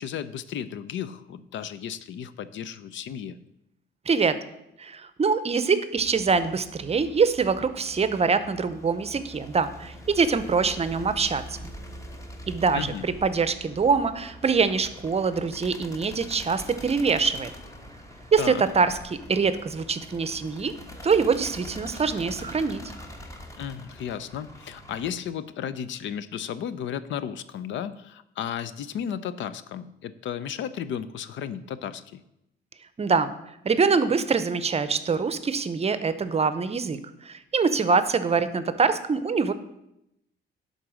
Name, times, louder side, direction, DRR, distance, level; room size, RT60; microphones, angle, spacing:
voice 1, 0.0-3.4 12.7-13.1 18.4-18.6 23.6-32.2, left 9 dB, 70° left, 14 dB, 0.6 m, -34 dB
voice 2, 4.1-4.4 4.8-11.6 12.5-17.5 18.3-20.8 21.0-22.8 33.0-33.4 33.6-39.5, right 5 dB, 30° right, 12 dB, 0.6 m, -24 dB
sound 1, 6.0-25.1, equal, 15° left, 1.1 m, -44 dB
11.0 x 4.0 x 6.3 m, 0.84 s
cardioid pair, 90°, 20 cm